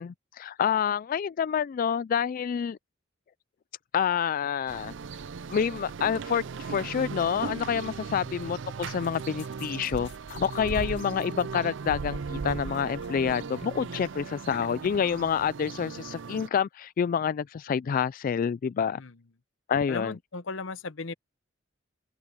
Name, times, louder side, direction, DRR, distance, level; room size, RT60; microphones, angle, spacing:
voice 1, 0.0-2.8 3.9-4.9 5.5-19.0 19.7-20.1, left 7 dB, 45° left, 0.3 m, -28 dB
sound 1, 4.7-16.5, right 5 dB, 70° right, 0.5 m, -37 dB
sound 2, 9.0-11.8 12.1-13.1 13.4-15.0, left 7 dB, 65° left, 2.0 m, -52 dB
voice 2, 19.9-21.1, left 3 dB, 85° left, 0.9 m, -37 dB
open air
head